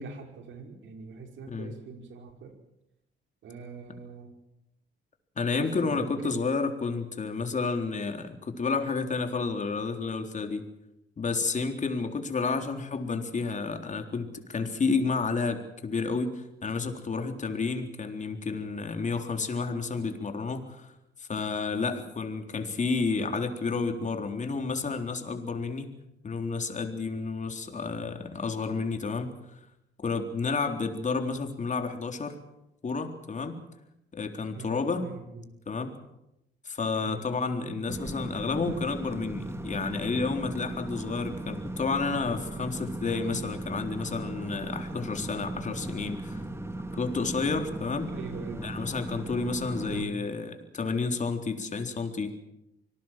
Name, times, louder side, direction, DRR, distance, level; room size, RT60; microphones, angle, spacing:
voice 1, 0.0-2.5 3.4-4.3 5.5-6.4 34.5-35.5 37.0-37.3 37.6-37.8 48.1-48.7 49.9-50.3, right 4 dB, 70° right, 4 dB, 5.4 m, -42 dB
voice 2, 5.4-10.7 11.2-20.9 21.2-25.9 26.2-29.3 30.0-32.4 32.8-33.6 34.1-35.1 35.7-35.9 36.7-46.4 46.9-48.1 48.6-52.3, left 4 dB, 40° left, 6 dB, 3.9 m, -30 dB
sound 1, 37.9-50.1, right 1 dB, 15° right, 2.6 m, -37 dB
26.0 x 19.0 x 7.7 m, 0.84 s
cardioid pair, 90°, 20 cm